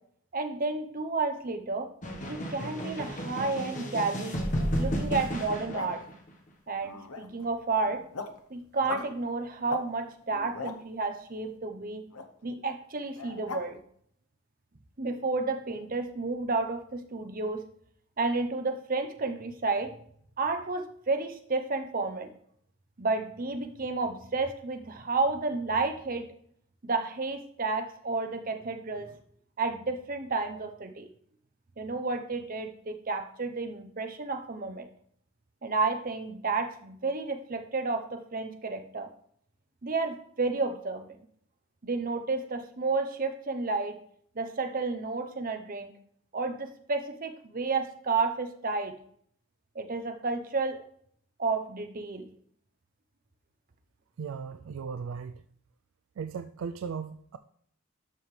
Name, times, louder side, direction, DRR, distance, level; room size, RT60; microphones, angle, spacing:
voice 1, 0.3-1.9 2.3-4.5 4.8-6.0 6.7-8.0 8.5-12.0 12.4-13.8 15.0-17.6 18.2-19.9 20.4-22.3 23.0-26.3 26.8-29.1 29.6-31.1 31.8-34.9 35.6-39.1 39.8-41.1 41.8-44.0 44.4-45.9 46.3-48.9 49.7-50.8 51.4-52.3, right 3 dB, 40° right, 6 dB, 0.7 m, -31 dB
sound 1, 2.0-6.3, equal, 35° left, 1.3 m, -32 dB
sound 2, 5.4-6.1 6.8-7.4 7.8-8.4 8.8-9.1 9.6-9.8 10.2-10.8 12.1-12.3 13.1-13.6, left 3 dB, 90° left, 0.9 m, -39 dB
voice 2, 54.2-55.4 56.2-57.4, right 6 dB, 65° right, 10 dB, 0.3 m, -37 dB
12.0 x 5.6 x 3.2 m, 0.65 s
head